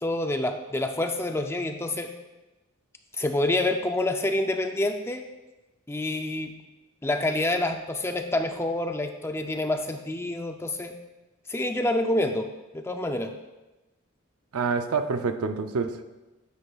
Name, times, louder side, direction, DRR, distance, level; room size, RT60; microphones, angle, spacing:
voice 1, 0.0-2.1 3.1-5.2 5.9-6.5 7.0-10.9 11.5-12.5 12.7-13.3, left 1 dB, 10° left, 5 dB, 0.4 m, -27 dB
voice 2, 14.5-16.0, right 4 dB, 90° right, 8 dB, 0.6 m, -27 dB
9.3 x 8.5 x 2.4 m, 1.1 s
head